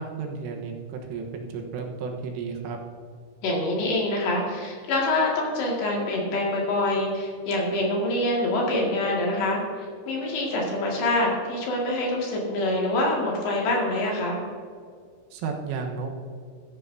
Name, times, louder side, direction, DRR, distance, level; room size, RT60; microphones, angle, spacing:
voice 1, 0.0-2.8 15.3-16.1, right 5 dB, 80° right, 2 dB, 3.7 m, -33 dB
voice 2, 3.4-14.4, left 1 dB, 60° left, -3 dB, 3.8 m, -25 dB
14.5 x 12.0 x 2.7 m, 2.2 s
omnidirectional pair, 5.9 m